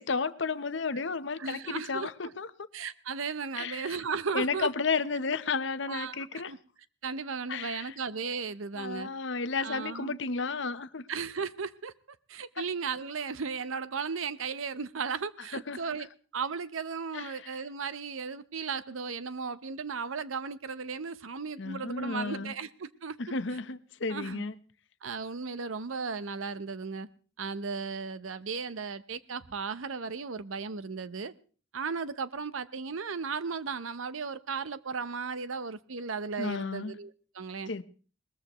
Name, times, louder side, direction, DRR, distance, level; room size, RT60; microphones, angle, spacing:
voice 1, 0.0-2.5 3.6-4.0 4.3-6.5 7.5-7.9 8.8-11.1 12.6-12.7 15.5-16.0 17.1-17.6 21.6-22.5 23.2-24.5 36.4-37.0 37.7-37.8, left 4 dB, 65° left, 0.8 m, -33 dB
voice 2, 1.4-2.3 2.7-4.7 5.9-6.6 7.0-9.1 9.6-10.2 11.1-11.9 12.3-16.1 16.3-23.2 24.1-24.4 25.0-27.1 27.4-31.3 31.7-37.7, right 5 dB, 90° right, 0.8 m, -35 dB
21.0 x 19.5 x 3.0 m
head